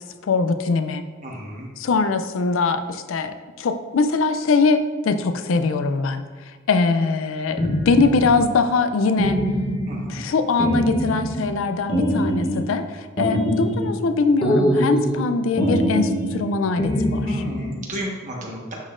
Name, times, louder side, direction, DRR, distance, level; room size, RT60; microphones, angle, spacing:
voice 1, 0.2-1.0 1.8-6.2 6.7-9.4 10.1-17.4, left 4 dB, 65° left, 9 dB, 0.4 m, -22 dB
voice 2, 1.2-1.7 9.9-10.3 17.2-18.7, equal, 35° right, -2 dB, 1.3 m, -33 dB
sound 1, 7.6-8.4 9.2-10.1 10.6-11.6 11.9-12.7 13.2-14.0 14.4-15.3 15.6-16.4 16.8-17.8, equal, 25° left, 0.9 m, -23 dB
11.0 x 3.9 x 2.5 m, 1.5 s
head